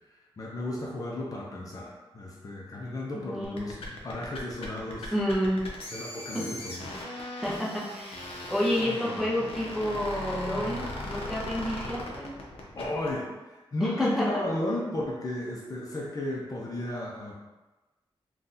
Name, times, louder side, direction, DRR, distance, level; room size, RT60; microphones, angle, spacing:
voice 1, 0.4-1.9 2.1-5.1 5.9-6.9 12.8-17.3, left 1 dB, 40° left, -4 dB, 0.6 m, -33 dB
voice 2, 3.1-3.8 5.1-5.6 6.3-6.4 7.4-12.3 13.8-14.4, equal, 5° right, -6 dB, 0.6 m, -30 dB
sound 1, 3.4-13.1, left 1 dB, 85° left, 0.6 m, -38 dB
3.7 x 2.3 x 2.7 m, 1.1 s
wide cardioid pair, 165°, 10 cm